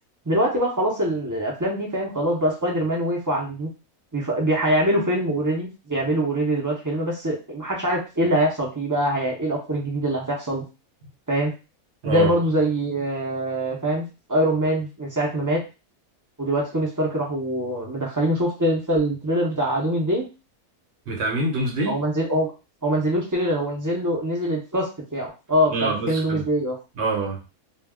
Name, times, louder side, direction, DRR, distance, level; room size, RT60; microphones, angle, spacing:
voice 1, 0.3-3.7 4.1-10.6 11.3-11.5 12.0-15.6 16.4-20.3 21.9-22.5 22.8-26.8, right 1 dB, 30° right, -3 dB, 0.3 m, -24 dB
voice 2, 21.1-22.0 25.7-26.4 27.0-27.4, right 3 dB, 55° right, 1 dB, 0.9 m, -25 dB
2.3 x 2.2 x 3.4 m, 0.29 s
omnidirectional pair, 1.5 m